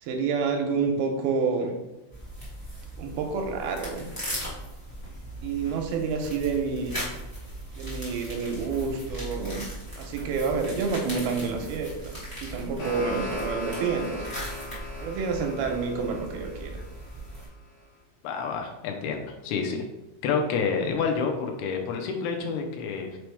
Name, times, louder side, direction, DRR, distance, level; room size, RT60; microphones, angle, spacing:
voice 1, 0.0-1.7 3.0-4.1 5.4-7.0 7.8-9.7 10.0-14.3 15.0-16.8, right 5 dB, 85° right, 3 dB, 2.5 m, -28 dB
sound 1, 2.1-17.5, equal, 20° left, 0.5 m, -38 dB
sound 2, 12.4-17.4, left 3 dB, 60° left, 1.9 m, -39 dB
voice 2, 18.2-19.8 20.2-23.2, left 5 dB, 80° left, 3 dB, 2.6 m, -28 dB
6.1 x 4.5 x 3.4 m, 1.0 s
omnidirectional pair, 4.6 m